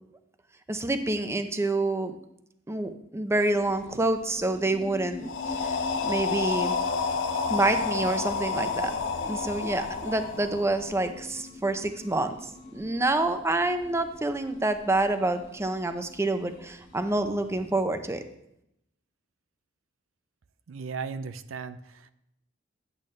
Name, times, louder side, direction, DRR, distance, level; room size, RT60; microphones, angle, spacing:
voice 1, 0.7-2.1 2.7-6.8 7.5-8.9 9.2-18.2, right 2 dB, 15° right, 8 dB, 0.6 m, -27 dB
sound 1, 3.3-17.8, left 2 dB, 50° left, 1.9 m, -45 dB
sound 2, 5.2-11.1, left 5 dB, 65° left, 0.6 m, -30 dB
voice 2, 20.7-22.1, right 5 dB, 90° right, 12 dB, 0.5 m, -36 dB
10.0 x 8.5 x 3.2 m, 0.79 s
head